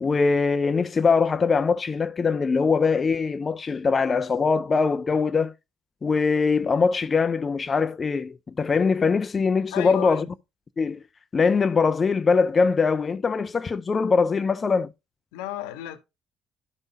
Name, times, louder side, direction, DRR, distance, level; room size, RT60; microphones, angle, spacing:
voice 1, 0.0-5.5 6.0-10.2 10.8-11.0 11.3-14.9, left 5 dB, 35° left, 0.4 m, -22 dB
voice 2, 9.7-10.3 15.3-16.0, left 12 dB, 85° left, 0.8 m, -33 dB
12.0 x 5.4 x 2.7 m
hypercardioid pair, 60°, 0 cm